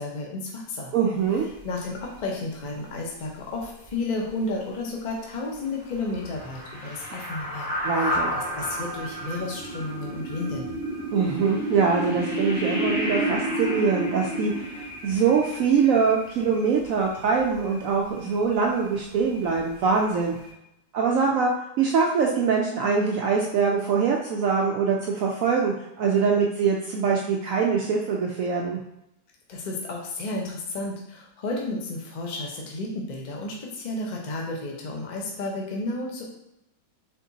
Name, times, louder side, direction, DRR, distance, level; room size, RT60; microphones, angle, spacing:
voice 1, 0.0-0.9 1.6-10.7 29.5-36.2, left 2 dB, 40° left, -1 dB, 0.6 m, -32 dB
voice 2, 0.9-1.4 7.8-8.3 11.1-20.4 20.9-28.8, right 5 dB, 70° right, -1 dB, 0.8 m, -23 dB
sound 1, 1.6-1.7 2.0-2.2 3.6-3.9 4.3-4.4 5.9-17.8 18.2-18.4 18.8-18.9 19.3-20.1 20.4-20.5, right 1 dB, 90° left, 1.9 m, -31 dB
4.4 x 3.5 x 2.7 m, 0.84 s
omnidirectional pair, 1.8 m